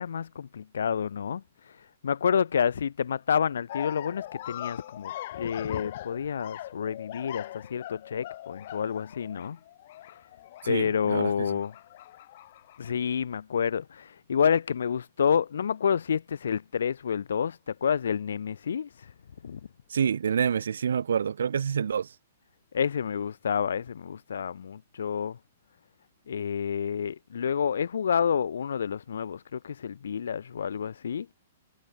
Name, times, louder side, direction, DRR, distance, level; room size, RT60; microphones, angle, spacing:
voice 1, 0.0-1.8 2.0-9.6 10.6-11.7 12.8-19.1 19.4-19.6 22.7-25.4 26.3-31.3, left 7 dB, 85° left, 0.8 m, -29 dB
sound 1, 3.7-12.9, left 14 dB, 45° left, 1.5 m, -41 dB
voice 2, 10.6-11.6 19.9-22.1, right 7 dB, 90° right, 2.3 m, -27 dB
hypercardioid pair, 170°, 0 cm